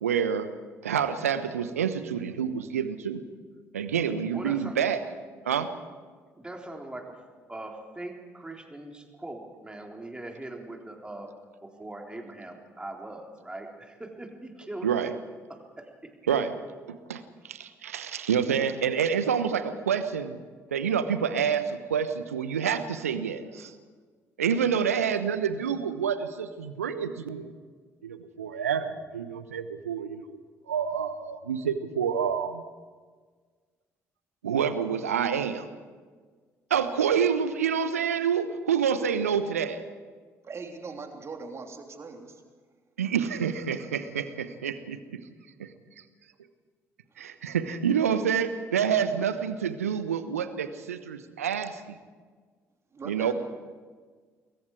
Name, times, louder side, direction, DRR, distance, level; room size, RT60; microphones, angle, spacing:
voice 1, 0.0-0.5 0.8-3.2 3.7-5.0 5.4-5.7 14.8-15.1 16.3-16.6 17.1-20.4 20.7-23.7 24.4-27.5 28.0-30.3 30.7-32.6 34.4-35.7 36.7-39.8 43.0-45.0 45.6-45.7 47.2-52.0 53.0-53.3, right 7 dB, 80° right, 12 dB, 1.1 m, -28 dB
voice 2, 4.3-4.9 6.4-7.1 7.5-11.3 11.6-15.1 15.8-15.9, right 2 dB, 10° right, 2 dB, 3.8 m, -41 dB
voice 3, 40.4-42.4 52.9-53.3, right 4 dB, 35° right, 3 dB, 3.3 m, -40 dB
27.0 x 22.0 x 4.8 m, 1.5 s
figure-of-eight pair, 50°, 8 cm